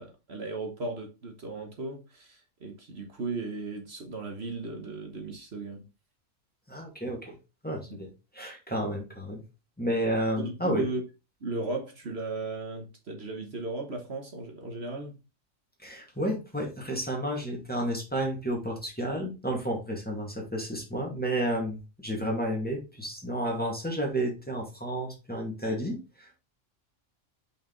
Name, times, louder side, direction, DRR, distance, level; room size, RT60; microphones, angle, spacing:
voice 1, 0.0-5.8 7.9-8.0 10.4-11.0 11.4-15.1 22.2-22.3, right 3 dB, 55° right, 1.5 m, -36 dB
voice 2, 6.7-7.4 7.6-9.4 9.8-10.9 15.8-26.4, right 1 dB, 5° left, 2.1 m, -31 dB
5.6 x 5.1 x 3.9 m
omnidirectional pair, 1.3 m